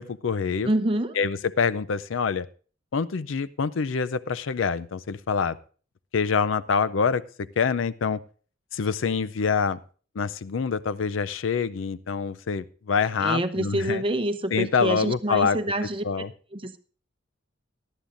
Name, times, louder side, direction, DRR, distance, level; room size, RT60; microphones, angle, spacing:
voice 1, 0.0-0.7 1.1-2.5 2.9-5.6 6.1-7.2 7.6-8.2 8.7-9.8 10.2-14.0 14.5-16.3, left 5 dB, 80° left, 16 dB, 0.5 m, -26 dB
voice 2, 0.6-1.2 13.2-16.0 16.5-16.8, right 1 dB, 30° right, 8 dB, 0.8 m, -26 dB
18.5 x 11.5 x 2.6 m, 0.39 s
head